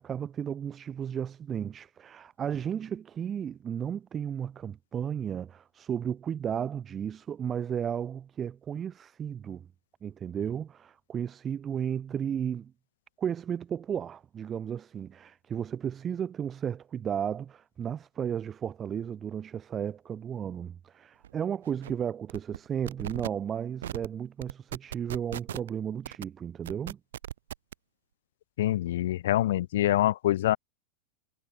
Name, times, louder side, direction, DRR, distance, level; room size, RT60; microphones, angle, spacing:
voice 1, 0.0-9.7 10.0-12.7 13.2-27.0, right 8 dB, 25° right, 2.6 m, -34 dB
sound 1, 21.2-21.3 21.6-21.9 22.3-22.6 22.9-23.3 23.8-24.1 24.4-25.7 26.0-26.2 26.7-27.7, right 11 dB, 60° right, 4.5 m, -37 dB
voice 2, 28.6-30.6, left 13 dB, 55° left, 1.0 m, -25 dB
figure-of-eight pair, 90°, 0 cm